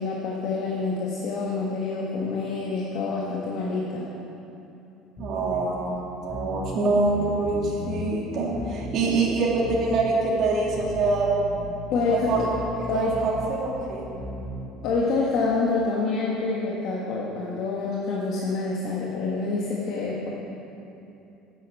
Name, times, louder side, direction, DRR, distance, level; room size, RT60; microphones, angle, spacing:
voice 1, 0.0-4.1 11.9-12.5 12.9-13.1 14.8-20.3, left 3 dB, 50° left, -3 dB, 1.5 m, -27 dB
sound 1, 5.2-5.6 5.9-6.0 6.3-6.7 7.0-8.2 8.5-10.1 10.4-15.0, left 2 dB, 30° left, 3.6 m, -37 dB
voice 2, 5.2-11.3 12.1-12.4 12.8-14.1, right 3 dB, 40° right, -3 dB, 2.6 m, -25 dB
11.5 x 8.3 x 8.3 m, 2.9 s
cardioid pair, 170°, 0 cm